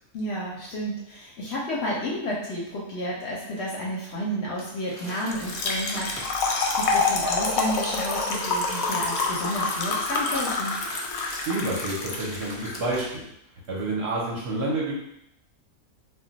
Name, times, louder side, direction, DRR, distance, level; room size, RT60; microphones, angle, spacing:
voice 1, 0.1-10.8, equal, 60° left, -4 dB, 0.7 m, -31 dB
Crumpling crinkling, 4.5-13.2 13.6-13.7, equal, 10° right, 0.7 m, -43 dB
Trickle dribble / Fill (with liquid), 5.3-12.8, left 3 dB, 90° left, 1.0 m, -27 dB
voice 2, 11.5-13.2 13.7-14.9, right 2 dB, 60° right, -4 dB, 0.8 m, -28 dB
2.3 x 2.2 x 3.8 m, 0.80 s
omnidirectional pair, 1.5 m